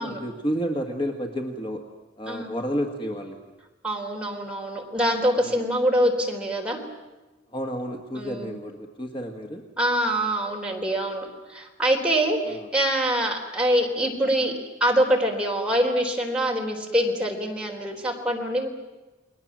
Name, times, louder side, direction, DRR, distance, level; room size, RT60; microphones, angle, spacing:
voice 1, 0.0-1.8 2.2-3.4 5.4-5.6 7.5-9.6 12.4-12.7, equal, 25° left, 3 dB, 1.6 m, -31 dB
voice 2, 3.8-6.8 8.1-8.6 9.8-14.5 14.8-18.7, equal, 5° right, -1 dB, 3.8 m, -24 dB
30.0 x 21.0 x 7.4 m, 1.1 s
head